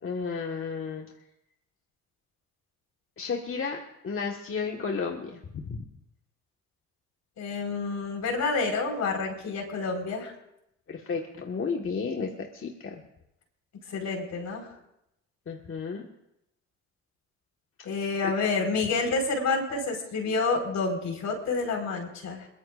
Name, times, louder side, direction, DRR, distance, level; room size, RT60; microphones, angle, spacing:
voice 1, 0.0-1.1 3.2-5.8 10.9-13.0 15.5-16.0 18.2-18.3, left 5 dB, 45° left, 1 dB, 1.6 m, -33 dB
voice 2, 7.4-10.3 13.9-14.7 17.8-22.5, left 4 dB, 70° left, 2 dB, 4.7 m, -29 dB
22.0 x 22.0 x 2.6 m, 0.84 s
cardioid pair, 90°, 30 cm